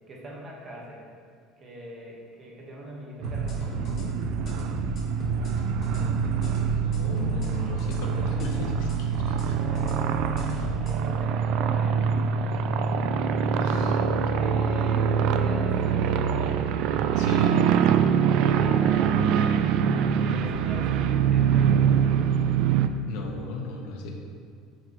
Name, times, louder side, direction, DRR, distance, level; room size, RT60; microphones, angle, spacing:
voice 1, 0.1-1.0 1.6-4.1 9.5-12.1 14.2-16.6 18.4-19.2 19.7-22.3, right 1 dB, 25° right, -3 dB, 1.3 m, -42 dB
sound 1, 3.2-11.0, left 1 dB, 40° left, 1.3 m, -34 dB
sound 2, 3.2-22.9, right 7 dB, 55° right, 0.3 m, -24 dB
voice 2, 5.9-6.3 6.7-9.6 10.5-10.7 13.6-14.0 17.1-17.7 23.0-24.1, left 3 dB, 70° left, 1 dB, 1.0 m, -36 dB
8.7 x 4.9 x 3.0 m, 2.3 s
cardioid pair, 155°, 0 cm